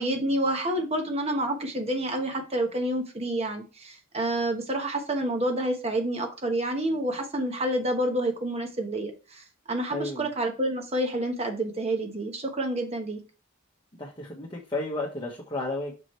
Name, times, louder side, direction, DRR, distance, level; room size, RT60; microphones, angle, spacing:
voice 1, 0.0-13.2, right 1 dB, 30° right, 3 dB, 1.1 m, -28 dB
voice 2, 9.9-10.3 14.0-15.9, left 2 dB, 20° left, -3 dB, 1.0 m, -32 dB
6.4 x 4.8 x 3.2 m, 0.32 s
head